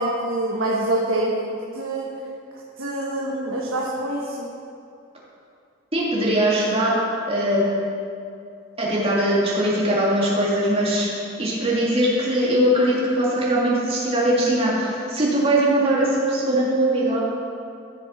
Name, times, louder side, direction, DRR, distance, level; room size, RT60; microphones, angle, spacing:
voice 1, 0.0-1.4 1.7-2.2 2.8-4.5, right 1 dB, 70° right, -4 dB, 1.3 m, -25 dB
voice 2, 5.9-6.9 7.3-7.7 8.8-11.1 11.4-17.2, right 1 dB, 30° right, -6 dB, 2.4 m, -21 dB
15.0 x 6.6 x 4.4 m, 2.4 s
head